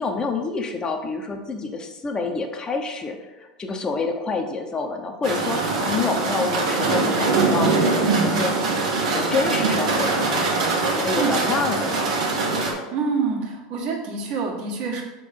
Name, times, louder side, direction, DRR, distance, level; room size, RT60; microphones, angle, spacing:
voice 1, 0.0-7.7 8.2-10.5 10.9-12.1, left 4 dB, 20° left, 3 dB, 0.7 m, -28 dB
sound 1, 5.2-12.7, right 3 dB, 85° right, 1.3 m, -22 dB
voice 2, 12.9-15.0, right 5 dB, 60° right, 0 dB, 1.5 m, -26 dB
5.0 x 3.8 x 5.0 m, 1.1 s
hypercardioid pair, 105°, 3 cm